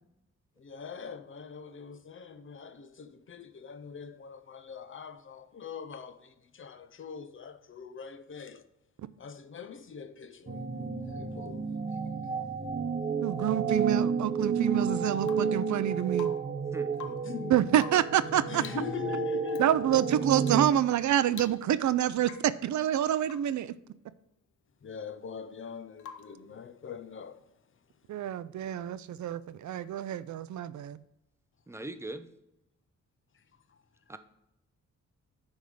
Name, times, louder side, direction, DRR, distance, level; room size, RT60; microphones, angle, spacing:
voice 1, 0.6-8.6 9.2-12.4 17.1-17.6 18.5-19.6 24.8-27.5 33.3-33.4 33.7-33.8, left 6 dB, 45° left, 0.7 m, -43 dB
sound 1, 10.5-20.7, right 6 dB, 30° right, 0.9 m, -31 dB
voice 2, 13.2-16.3 17.5-18.6 19.6-23.7 28.1-31.0, right 11 dB, 75° right, 0.5 m, -27 dB
Rain / Water tap faucet / Drip, 15.2-15.6 16.1-16.6 16.9-17.4 17.8-18.2 18.6-18.9 19.5-19.7 20.4-20.7 21.0-21.1 21.3-21.9 22.2-22.6 23.2-23.6 26.0-26.4 28.3-28.4, left 8 dB, 90° left, 0.6 m, -47 dB
voice 3, 31.7-32.3 34.1-34.2, right 2 dB, 10° right, 0.5 m, -40 dB
10.5 x 3.6 x 6.4 m
wide cardioid pair, 155°, 29 cm